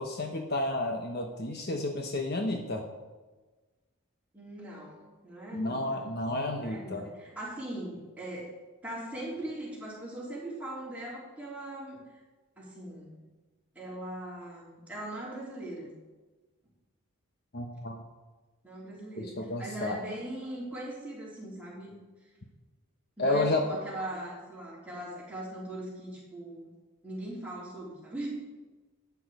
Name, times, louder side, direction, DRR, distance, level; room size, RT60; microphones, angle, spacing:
voice 1, 0.0-2.8 5.5-7.0 17.5-18.0 19.2-20.0 23.2-23.6, left 2 dB, 45° left, 3 dB, 1.0 m, -31 dB
voice 2, 4.3-6.0 6.5-8.5 8.8-12.0 12.6-13.2 13.7-15.9 18.6-19.3 19.6-22.0 23.2-26.7 27.0-28.3, right 1 dB, 5° right, -6 dB, 3.3 m, -40 dB
12.0 x 8.6 x 4.9 m, 1.2 s
head